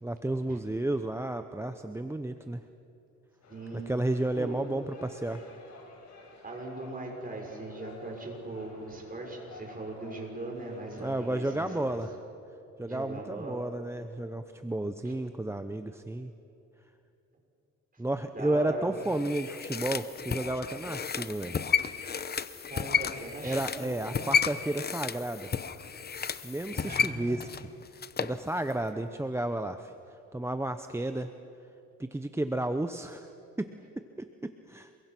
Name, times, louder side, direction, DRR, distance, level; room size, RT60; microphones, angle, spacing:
voice 1, 0.0-2.6 3.7-5.4 11.0-12.1 12.8-16.3 18.0-21.5 23.4-25.5 26.4-27.6 27.9-29.9 30.3-31.3 32.0-33.3 33.6-34.9, right 1 dB, 10° right, 8 dB, 0.8 m, -32 dB
sound 1, 3.4-12.0, left 3 dB, 65° left, 6.9 m, -52 dB
voice 2, 3.5-3.9 4.4-4.6 6.4-12.0 12.9-13.7 18.3-18.9 22.7-24.0 26.6-27.4, right 2 dB, 30° right, 1 dB, 6.2 m, -40 dB
sound 2, 19.0-28.4 28.7-28.8, left 7 dB, 30° left, 0.9 m, -32 dB
28.0 x 23.0 x 6.1 m, 2.7 s
cardioid pair, 90°, 30 cm